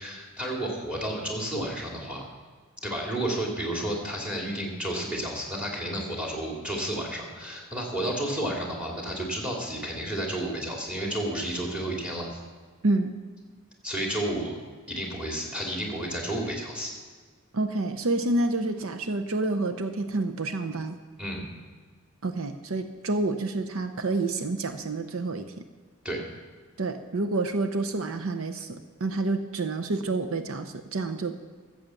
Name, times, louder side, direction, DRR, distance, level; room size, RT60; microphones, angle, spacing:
voice 1, 0.0-2.2 2.8-12.4 13.8-14.6 14.9-16.9 21.2-21.4 26.0-26.2, right 1 dB, 5° right, 0 dB, 2.6 m, -31 dB
voice 2, 17.5-21.0 22.2-25.5 26.8-31.3, right 2 dB, 70° right, 7 dB, 0.7 m, -28 dB
14.0 x 7.8 x 7.1 m, 1.5 s
head